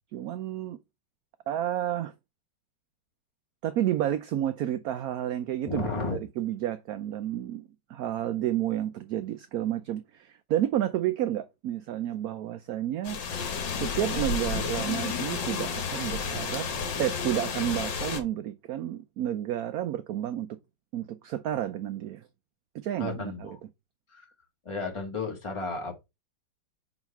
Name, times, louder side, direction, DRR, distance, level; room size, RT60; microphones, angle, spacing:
voice 1, 0.1-0.8 1.5-2.1 3.6-13.2 13.8-16.7 17.0-20.5 20.9-22.2 22.8-23.6, right 12 dB, 70° right, 0.9 m, -31 dB
voice 2, 5.7-6.2 23.0-23.6 24.1-24.3 24.6-26.0, left 3 dB, 15° left, 1.7 m, -33 dB
sound 1, 13.0-18.2, left 5 dB, 75° left, 1.8 m, -31 dB
4.8 x 4.0 x 5.8 m
omnidirectional pair, 2.0 m